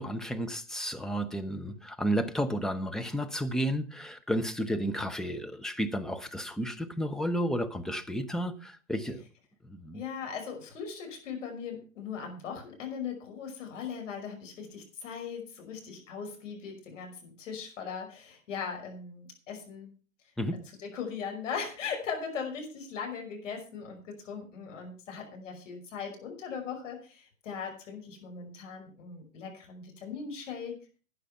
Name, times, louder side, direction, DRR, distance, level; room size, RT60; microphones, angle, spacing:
voice 1, 0.0-9.2 9.6-10.0 20.4-20.6, equal, ahead, 0.7 m, -32 dB
voice 2, 9.9-19.9 20.8-30.8, left 6 dB, 65° left, 5.6 m, -39 dB
12.0 x 9.7 x 5.7 m
hypercardioid pair, 110°, 40 cm